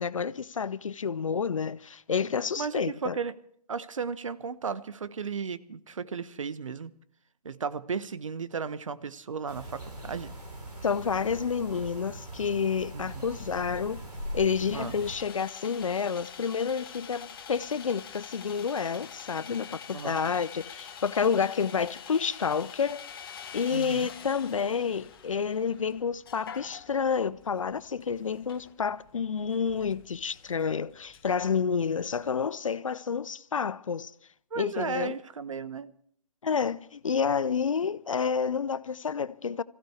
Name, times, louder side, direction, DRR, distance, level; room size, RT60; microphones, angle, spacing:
voice 1, 0.0-3.2 10.8-14.0 14.3-23.0 23.5-34.1 34.6-35.2 36.4-39.6, left 6 dB, 55° left, 0.6 m, -29 dB
voice 2, 2.6-3.3 3.7-6.9 7.4-10.3 12.9-13.2 14.7-15.0 19.9-20.2 23.7-24.1 34.5-35.9, right 5 dB, 55° right, 0.9 m, -35 dB
sound 1, 9.5-15.2, equal, 75° right, 3.8 m, -41 dB
Sawing, 13.1-32.5, left 7 dB, 35° left, 1.5 m, -47 dB
25.5 x 15.5 x 3.3 m
figure-of-eight pair, 135°, 20 cm